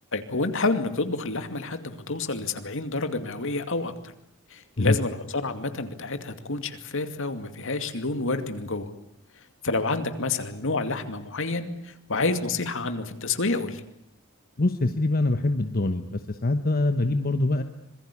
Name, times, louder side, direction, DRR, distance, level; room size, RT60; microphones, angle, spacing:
voice 1, 0.1-3.9 4.5-8.9 9.6-13.8, left 3 dB, 65° left, 8 dB, 2.4 m, -29 dB
voice 2, 14.6-17.6, left 2 dB, 45° left, 8 dB, 1.1 m, -24 dB
26.0 x 22.0 x 8.5 m, 0.73 s
head